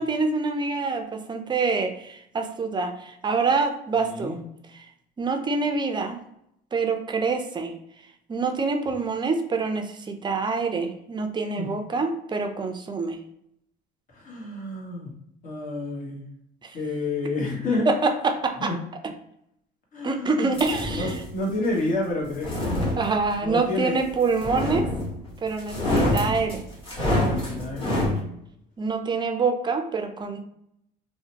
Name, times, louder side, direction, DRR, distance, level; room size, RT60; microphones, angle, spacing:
voice 1, 0.0-4.4 4.7-4.8 5.2-6.2 6.7-7.7 8.3-13.2 16.6-16.7 17.9-18.7 20.0-21.1 23.0-24.9 25.4-26.6 28.8-30.4, right 4 dB, 25° right, 6 dB, 0.4 m, -26 dB
voice 2, 4.0-4.4 11.6-11.7 14.1-15.1 15.4-16.2 16.7-17.9 18.6-18.8 19.9-22.8 23.4-23.9 25.9-26.2 27.1-28.0, left 2 dB, 45° left, -2 dB, 1.1 m, -30 dB
sound 1, 20.5-21.3 22.2-23.5 24.4-25.3 25.6-28.2, left 1 dB, 25° left, 1.3 m, -26 dB
2.6 x 2.1 x 2.8 m, 0.76 s
supercardioid pair, 85°, 20 cm